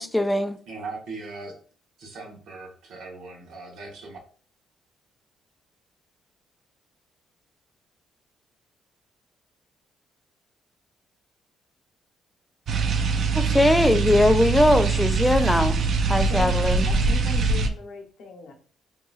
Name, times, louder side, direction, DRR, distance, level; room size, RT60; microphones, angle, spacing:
voice 1, 0.0-0.6 13.3-15.8 16.1-16.9, left 1 dB, 5° left, 0.4 m, -20 dB
voice 2, 0.7-1.5 2.0-4.2, right 3 dB, 80° right, 1.1 m, -39 dB
sound 1, 12.7-17.7, right 4 dB, 60° right, 0.4 m, -23 dB
voice 3, 16.1-16.5 16.8-18.5, left 5 dB, 80° left, 0.9 m, -39 dB
3.7 x 2.8 x 2.4 m
cardioid pair, 90°, 0 cm